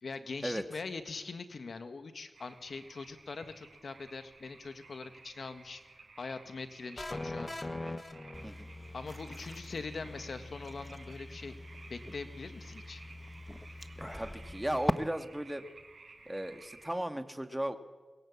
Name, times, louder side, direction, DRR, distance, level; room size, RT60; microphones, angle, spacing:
voice 1, 0.0-5.8 6.2-7.5 8.9-11.5 11.9-13.0, left 4 dB, 70° left, 9 dB, 1.7 m, -42 dB
sound 1, 2.3-16.9, right 3 dB, 70° right, 4.7 m, -55 dB
sound 2, 7.0-9.0, left 2 dB, 25° left, 1.3 m, -40 dB
sound 3, 8.3-14.9, left 1 dB, 10° left, 1.1 m, -41 dB
voice 2, 14.0-15.6 16.2-17.8, right 1 dB, 10° right, 8 dB, 1.7 m, -36 dB
22.5 x 21.5 x 8.6 m, 1.3 s
wide cardioid pair, 70°, 0 cm